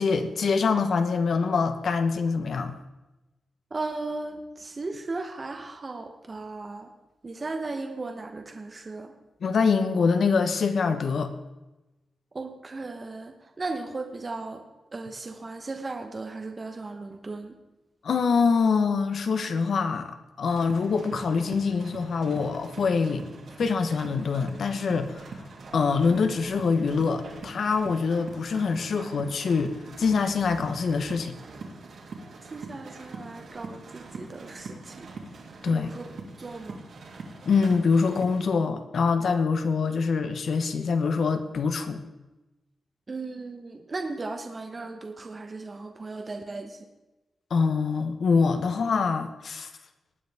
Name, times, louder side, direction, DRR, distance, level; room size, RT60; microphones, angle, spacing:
voice 1, 0.0-2.8 9.4-11.3 18.0-23.2 23.6-25.2 25.7-31.3 35.6-35.9 37.4-42.0 47.5-49.7, left 5 dB, 65° left, 8 dB, 1.1 m, -25 dB
voice 2, 3.7-6.9 7.2-9.1 12.3-14.6 14.9-17.6 32.5-35.1 35.7-36.1 36.4-36.8 43.1-46.9, right 3 dB, 30° right, 4 dB, 1.0 m, -36 dB
sound 1, 20.5-38.4, right 3 dB, 70° right, 2.7 m, -43 dB
18.5 x 9.4 x 3.6 m, 1.1 s
wide cardioid pair, 105°, 0 cm